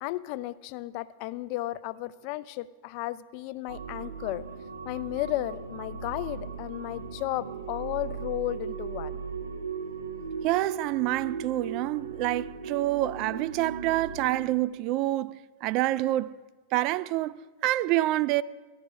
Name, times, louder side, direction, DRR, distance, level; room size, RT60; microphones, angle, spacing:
voice 1, 0.0-4.4 4.8-9.2, left 16 dB, 45° left, 0.4 m, -34 dB
sound 1, 3.7-14.4, right 5 dB, 70° right, 1.5 m, -38 dB
voice 2, 10.4-16.4 16.7-18.4, right 16 dB, 40° right, 0.3 m, -27 dB
14.5 x 11.5 x 3.6 m
figure-of-eight pair, 90°, 0 cm